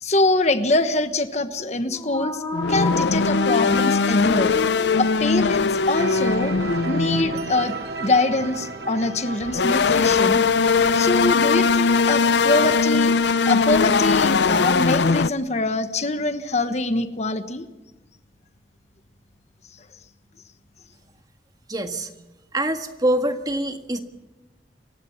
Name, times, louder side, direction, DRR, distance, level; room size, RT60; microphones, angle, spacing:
voice 1, 0.0-2.4 2.7-4.5 5.0-6.5 6.8-7.7 8.0-10.5 10.9-13.1 13.4-17.6, left 2 dB, 40° left, 10 dB, 1.3 m, -23 dB
sound 1, 1.8-5.7, left 2 dB, 15° left, 4.2 m, -31 dB
sound 2, 2.5-7.6 9.4-15.3, left 4 dB, 80° left, 0.6 m, -20 dB
sound 3, 5.9-12.7, right 3 dB, 65° right, 2.2 m, -35 dB
voice 2, 21.7-22.1 22.5-24.0, right 1 dB, 20° right, 7 dB, 1.6 m, -24 dB
29.0 x 16.0 x 7.2 m, 1.1 s
head